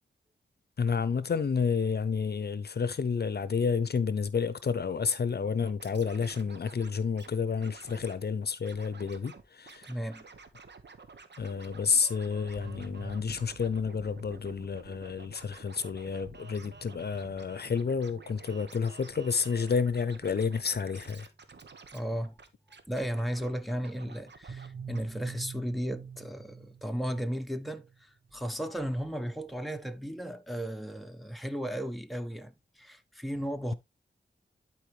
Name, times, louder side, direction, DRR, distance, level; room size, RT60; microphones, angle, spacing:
voice 1, 0.8-9.9 11.4-21.3, left 5 dB, 60° left, 0.7 m, -30 dB
Scratching (performance technique), 5.6-7.3 7.6-8.2 8.6-9.4 9.7-24.7 24.9-25.0, right 4 dB, 70° right, 1.2 m, -51 dB
voice 2, 9.8-10.2 21.9-22.3 22.9-33.7, equal, ahead, 1.1 m, -35 dB
sound 1, 12.4-22.5 24.5-29.5, right 5 dB, 50° right, 1.5 m, -50 dB
11.5 x 4.6 x 3.2 m
wide cardioid pair, 65°, 19 cm